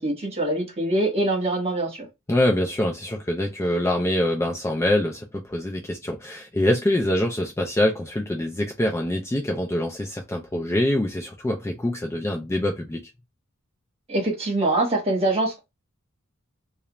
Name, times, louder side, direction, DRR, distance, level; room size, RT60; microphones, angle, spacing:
voice 1, 0.0-2.1 14.1-15.6, right 2 dB, 30° right, 1.2 m, -24 dB
voice 2, 2.3-13.1, left 1 dB, 15° left, 0.3 m, -24 dB
2.4 x 2.1 x 2.9 m
head